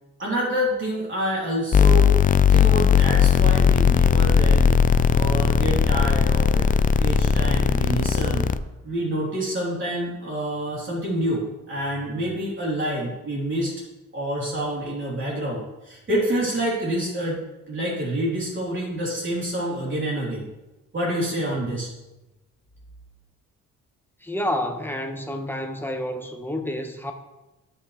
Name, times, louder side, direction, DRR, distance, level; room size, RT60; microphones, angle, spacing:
voice 1, 0.2-2.1 2.5-6.7 7.0-8.5 8.8-13.7 14.1-17.4 17.7-20.5 20.9-21.9, right 1 dB, 40° right, 3.4 m, -27 dB
sound 1, 1.7-8.6, left 7 dB, 30° left, 0.4 m, -18 dB
voice 2, 24.2-27.1, left 1 dB, 5° left, 1.3 m, -29 dB
16.0 x 5.9 x 3.2 m
cardioid pair, 90°, 30 cm